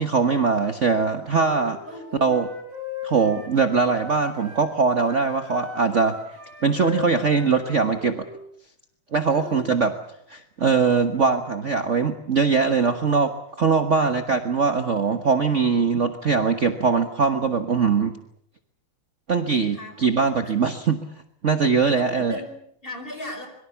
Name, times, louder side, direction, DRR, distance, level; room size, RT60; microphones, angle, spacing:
voice 1, 0.0-1.8 2.2-2.5 3.0-6.2 6.6-8.3 9.1-9.9 10.3-18.2 19.3-21.0 21.4-22.4, right 5 dB, 50° right, 8 dB, 0.8 m, -21 dB
Wind instrument woodwind instrument, 1.4-4.7 5.0-8.4, left 6 dB, 25° right, 7.3 m, -38 dB
voice 2, 1.9-2.4 9.3-9.7 13.9-14.2 19.5-20.1 20.4-20.5 21.9-23.5, left 1 dB, 15° left, 6 dB, 5.3 m, -38 dB
26.0 x 23.0 x 7.1 m, 0.71 s
omnidirectional pair, 3.3 m